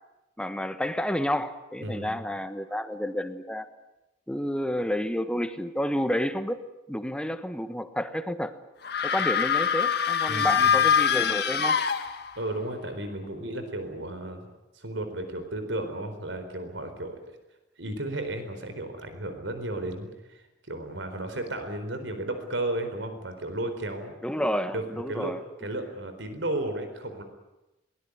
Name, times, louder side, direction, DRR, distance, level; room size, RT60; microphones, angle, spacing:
voice 1, 0.4-3.7 4.3-8.5 9.0-11.8 24.2-25.4, equal, 5° left, 10 dB, 1.3 m, -30 dB
voice 2, 1.8-2.2 10.3-10.8 12.4-14.4 14.7-17.3 17.8-24.2 24.7-25.3 25.6-27.2, right 1 dB, 85° right, 8 dB, 4.3 m, -34 dB
sound 1, 8.8-12.5, left 7 dB, 60° left, 1.7 m, -24 dB
22.5 x 20.0 x 9.6 m, 0.97 s
head